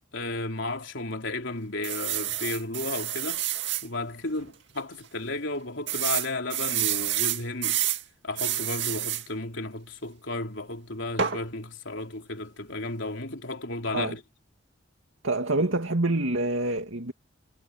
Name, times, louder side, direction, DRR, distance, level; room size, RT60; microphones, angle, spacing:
voice 1, 0.0-3.5 3.8-7.9 8.2-14.2, left 2 dB, 65° left, 3.4 m, -33 dB
sound 1, 1.8-3.9 4.4-4.5 4.8-4.9 5.9-8.0 8.4-9.3 11.2-11.4, right 11 dB, 60° right, 2.3 m, -28 dB
voice 2, 15.2-17.1, right 2 dB, 75° right, 2.3 m, -26 dB
head